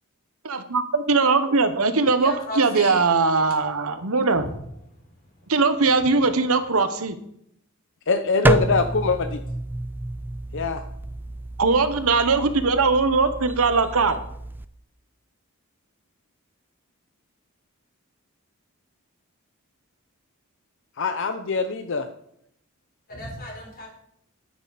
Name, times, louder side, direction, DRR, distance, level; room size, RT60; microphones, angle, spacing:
voice 1, 0.4-4.5 5.5-7.2 11.6-14.2, right 4 dB, 75° right, 10 dB, 1.1 m, -20 dB
voice 2, 2.2-3.0 4.3-4.5 23.1-23.9, left 1 dB, 45° left, 0 dB, 4.0 m, -35 dB
voice 3, 8.1-9.4 10.5-10.8 21.0-22.1, left 4 dB, 60° left, 8 dB, 0.7 m, -23 dB
sound 1, 8.4-14.6, right 1 dB, 10° right, 0.3 m, -29 dB
13.0 x 9.6 x 4.1 m, 0.73 s
head